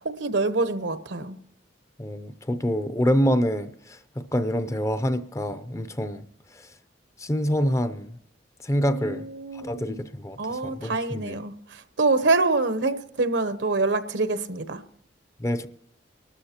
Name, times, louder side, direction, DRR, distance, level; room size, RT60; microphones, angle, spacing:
voice 1, 0.0-1.4 8.9-10.1 10.4-14.8, right 3 dB, 80° right, 0.9 m, -26 dB
voice 2, 2.0-6.2 7.2-8.2 8.6-9.3 9.5-10.4 10.6-11.4 15.4-15.7, equal, 15° left, 0.5 m, -26 dB
24.5 x 13.0 x 2.9 m
head